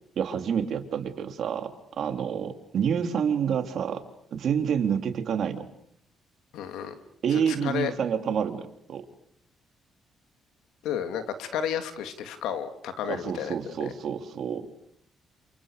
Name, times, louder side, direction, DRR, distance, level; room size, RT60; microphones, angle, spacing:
voice 1, 0.1-1.7 2.0-4.0 4.3-5.6 7.2-9.0 13.1-14.7, right 7 dB, 65° right, 6 dB, 3.3 m, -28 dB
voice 2, 6.5-7.0 7.3-7.9 10.8-13.5 13.8-13.9, left 8 dB, 90° left, 9 dB, 2.8 m, -32 dB
28.5 x 28.5 x 6.8 m, 0.71 s
cardioid pair, 90°, 0 cm